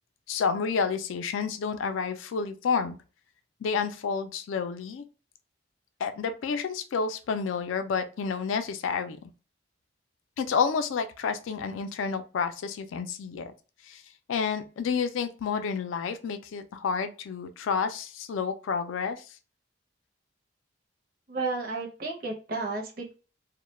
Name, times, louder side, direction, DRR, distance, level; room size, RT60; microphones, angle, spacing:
voice 1, 0.3-3.0 3.6-5.0 6.0-9.3 10.4-13.5 13.9-14.0 14.3-19.2, left 5 dB, 85° left, 9 dB, 0.3 m, -30 dB
voice 2, 21.3-23.1, right 3 dB, 50° right, 0 dB, 0.6 m, -32 dB
2.2 x 2.1 x 3.0 m, 0.34 s
head